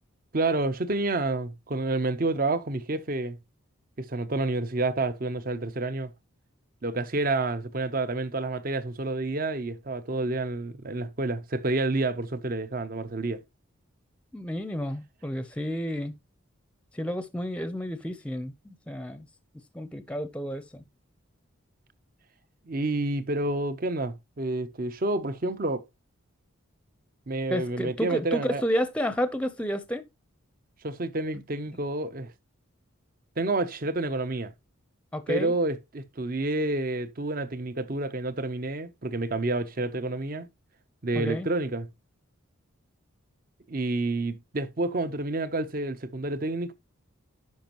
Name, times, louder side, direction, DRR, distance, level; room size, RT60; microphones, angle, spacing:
voice 1, 0.3-3.4 4.0-6.1 6.8-13.4 22.7-25.9 27.3-28.6 30.8-32.3 33.4-34.5 35.3-40.5 41.0-41.9 43.7-46.7, right 2 dB, 40° right, 0.7 m, -29 dB
voice 2, 14.3-16.1 16.9-19.3 19.7-20.8 27.5-30.0 35.1-35.5 41.1-41.5, equal, 5° left, 0.6 m, -31 dB
10.5 x 5.1 x 2.9 m
head